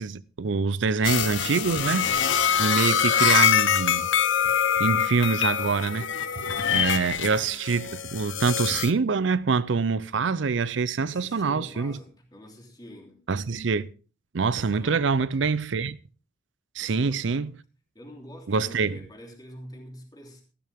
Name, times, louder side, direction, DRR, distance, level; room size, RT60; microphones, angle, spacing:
voice 1, 0.0-2.1 2.6-4.1 4.8-6.1 6.5-12.0 13.3-13.9 14.3-16.0 16.8-17.5 18.5-19.0, right 5 dB, 65° right, 0.5 m, -25 dB
sound 1, 1.0-8.9, left 8 dB, 75° left, 1.0 m, -24 dB
voice 2, 11.0-13.2 14.5-15.1 16.8-17.5 17.9-20.4, equal, 20° left, 3.2 m, -45 dB
14.5 x 12.5 x 3.5 m
head